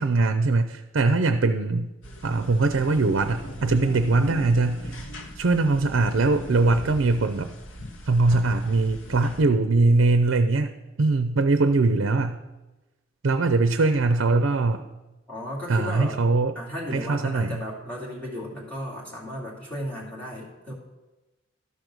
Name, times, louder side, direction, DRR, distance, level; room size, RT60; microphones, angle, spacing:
voice 1, 0.0-1.9 2.2-5.0 5.4-7.5 8.1-10.7 11.0-12.4 13.2-14.8 15.7-16.5 16.9-17.6, right 3 dB, 70° right, 8 dB, 0.5 m, -21 dB
sound 1, 2.0-9.4, left 1 dB, 75° left, 1.2 m, -39 dB
voice 2, 15.3-16.2 16.5-20.7, left 1 dB, 10° left, -6 dB, 2.6 m, -34 dB
12.5 x 5.2 x 6.2 m, 1.1 s
head